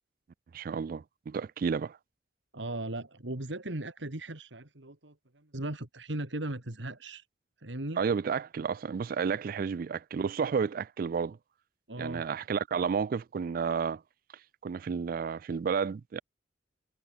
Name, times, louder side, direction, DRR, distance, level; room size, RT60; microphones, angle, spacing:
voice 1, 0.5-2.0 8.0-11.4 12.0-14.0 14.6-16.2, right 6 dB, 50° right, 0.3 m, -31 dB
voice 2, 2.5-7.2 7.6-8.0 11.9-12.2, right 1 dB, 80° right, 2.5 m, -38 dB
head